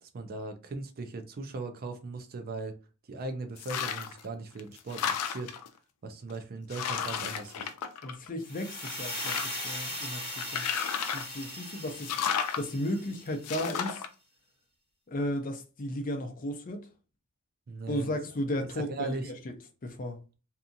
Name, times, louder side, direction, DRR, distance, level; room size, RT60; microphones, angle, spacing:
voice 1, 0.0-2.8 3.1-5.5 6.0-7.7 17.7-18.1 18.8-19.3, right 3 dB, 40° right, 0.4 m, -38 dB
sound 1, 3.6-4.2 4.6-5.7 6.3-6.4 6.7-8.4 8.8-9.7 10.4-11.4 12.0-12.6 13.4-14.1, left 7 dB, 90° left, 0.4 m, -33 dB
voice 2, 8.0-10.7 11.1-12.2 12.6-14.0 15.1-16.9 17.9-19.6 19.8-20.2, left 1 dB, 40° left, 0.5 m, -34 dB
sound 2, 8.4-13.5, left 1 dB, 20° left, 1.4 m, -39 dB
2.7 x 2.4 x 2.5 m
head